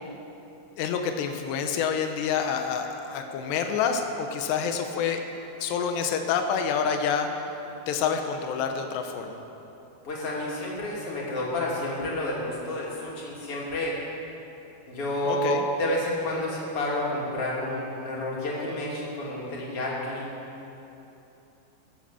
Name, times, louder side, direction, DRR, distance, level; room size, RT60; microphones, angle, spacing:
voice 1, 0.8-5.2 5.6-7.3 7.9-9.4 15.3-15.6, left 7 dB, 85° left, 5 dB, 3.1 m, -27 dB
voice 2, 10.0-14.0 14.9-20.3, left 1 dB, 35° left, -5 dB, 3.4 m, -30 dB
22.0 x 7.9 x 7.0 m, 2.9 s
omnidirectional pair, 4.8 m